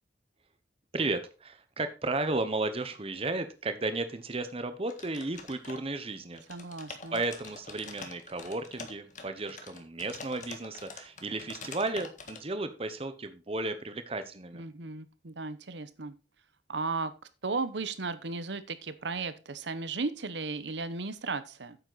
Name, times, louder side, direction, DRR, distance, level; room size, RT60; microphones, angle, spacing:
voice 1, 0.9-6.4 7.1-14.6, right 2 dB, 35° right, 10 dB, 0.9 m, -34 dB
sound 1, 4.9-6.1 6.3-12.4, left 4 dB, 45° left, 1.6 m, -45 dB
voice 2, 6.5-7.2 14.5-16.1 16.7-17.1 17.4-21.8, right 3 dB, 75° right, 13 dB, 1.0 m, -35 dB
9.1 x 7.5 x 4.0 m, 0.32 s
head